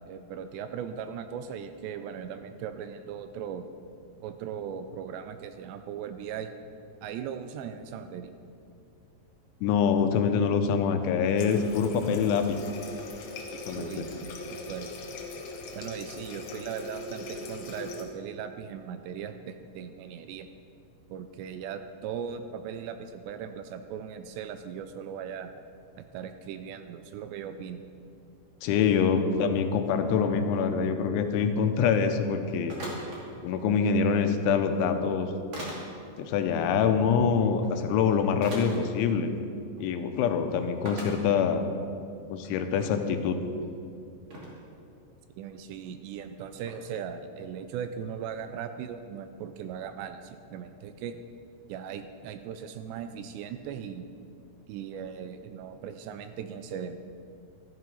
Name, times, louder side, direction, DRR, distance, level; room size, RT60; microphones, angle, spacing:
voice 1, 0.1-3.7 4.2-6.5 7.0-8.3 13.8-14.9 15.7-20.5 21.1-25.5 26.0-27.8 45.4-51.2 51.7-54.1 54.7-57.0, right 8 dB, 85° right, 9 dB, 2.6 m, -38 dB
voice 2, 9.6-12.6 13.7-14.1 28.6-32.8 33.4-35.3 36.2-39.3 39.8-41.6 42.3-43.4, left 6 dB, 90° left, 7 dB, 3.3 m, -25 dB
Water tap faucet, 11.4-18.1, left 2 dB, 70° left, 1.6 m, -40 dB
sound 1, 32.7-33.2 34.6-34.7 35.5-35.8 37.6-37.7 38.4-38.8 39.7-39.8 40.1-40.2 40.9-41.1 41.8-41.9 42.3-42.9 43.6-43.7 44.3-44.6 46.6-46.7, right 1 dB, 35° right, 2.5 m, -39 dB
14.0 x 12.5 x 5.5 m, 2.5 s
omnidirectional pair, 5.3 m